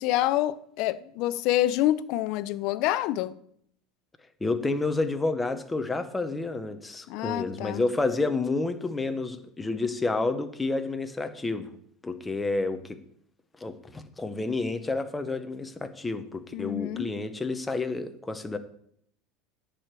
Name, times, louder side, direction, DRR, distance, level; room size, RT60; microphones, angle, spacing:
voice 1, 0.0-3.3 7.1-7.8 16.5-17.1, left 14 dB, 50° left, 0.6 m, -27 dB
voice 2, 4.4-11.7 12.0-13.0 13.6-18.6, left 3 dB, 10° left, 0.8 m, -30 dB
10.5 x 5.0 x 7.5 m
supercardioid pair, 160°, 0 cm